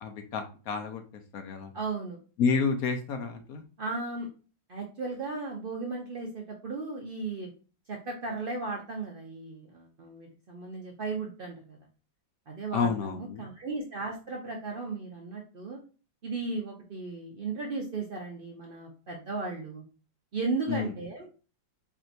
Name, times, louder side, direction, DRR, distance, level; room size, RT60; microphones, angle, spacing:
voice 1, 0.0-1.0 1.3-1.7 2.4-3.6 12.7-13.5 20.7-20.9, left 5 dB, 65° left, 6 dB, 1.0 m, -30 dB
voice 2, 1.7-2.2 3.8-4.3 4.7-7.5 7.9-11.8 12.5-15.8 16.2-19.8 20.3-21.3, right 3 dB, 70° right, -1 dB, 0.5 m, -35 dB
4.6 x 3.4 x 2.6 m, 0.35 s
omnidirectional pair, 2.0 m